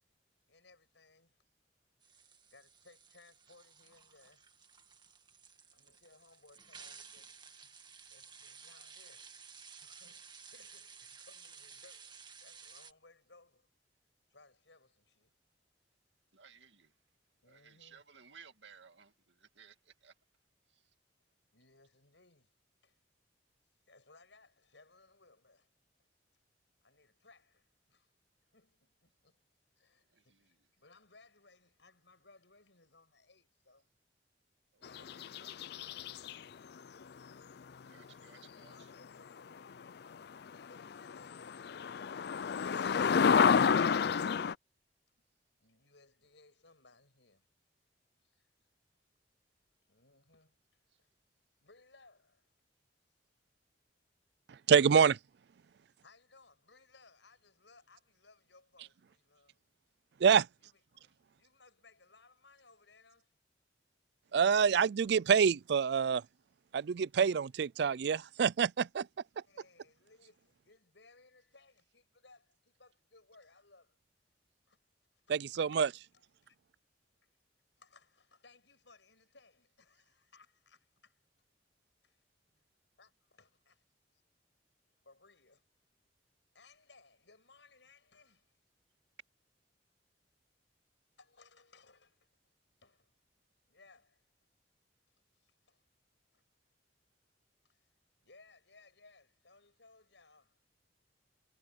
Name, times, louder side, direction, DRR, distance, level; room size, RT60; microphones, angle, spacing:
voice 1, 0.5-1.4 2.1-4.5 5.7-9.5 9.8-13.7 14.3-15.3 17.4-18.0 21.5-22.5 22.8-23.0 23.9-25.7 26.8-28.1 28.5-29.4 29.8-33.9 36.6-37.5 38.3-39.7 40.4-42.0 45.6-47.5 48.2-48.5 49.9-51.1 51.6-52.5 56.0-59.6 60.6-63.4 69.4-74.0 74.7-74.8 75.5-76.6 77.2-77.4 77.8-81.2 82.0-82.2 83.0-83.8 84.1-84.2 85.0-85.7 86.5-88.5 91.2-92.3 92.8-93.1 93.7-94.2 95.3-95.8 96.3-96.4 97.7-97.9 98.2-100.7, left 3 dB, 75° left, 7.3 m, -64 dB
sound 1, 2.0-12.9, right 6 dB, 25° right, 1.8 m, -55 dB
voice 2, 16.3-16.9 17.4-20.1 20.7-20.8 30.1-30.5 34.7-35.5 37.9-38.7, right 6 dB, 80° right, 2.3 m, -59 dB
sound 2, 34.8-36.4 39.9-40.0 40.5-40.6 40.8-44.5, left 6 dB, 60° left, 0.4 m, -29 dB
voice 3, 54.7-55.2 60.2-60.5 64.3-66.2 66.7-69.1 75.3-75.9, right 6 dB, 65° right, 0.4 m, -26 dB
head